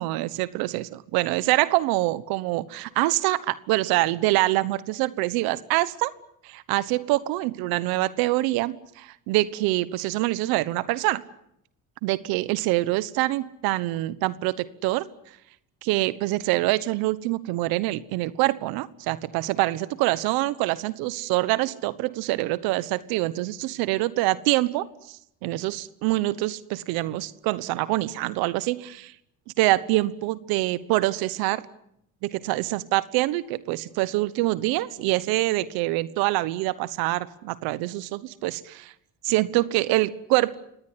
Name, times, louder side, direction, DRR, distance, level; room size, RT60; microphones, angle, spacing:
voice 1, 0.0-6.1 6.4-11.2 12.0-15.1 15.8-29.1 29.6-31.6 32.2-38.9 39.2-40.5, right 18 dB, 90° right, 17 dB, 1.2 m, -25 dB
25.0 x 19.0 x 9.7 m, 0.74 s
cardioid pair, 100°, 35 cm